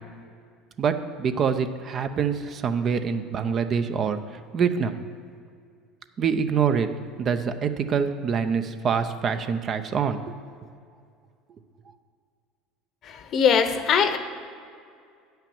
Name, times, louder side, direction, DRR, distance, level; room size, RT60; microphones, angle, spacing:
voice 1, 1.2-4.2 4.5-5.0 6.2-6.9 7.2-10.2, right 6 dB, 45° right, 9 dB, 0.6 m, -25 dB
voice 2, 13.1-14.2, left 7 dB, 50° left, 10 dB, 0.8 m, -21 dB
8.9 x 5.7 x 7.1 m, 2.3 s
supercardioid pair, 90°, 0 cm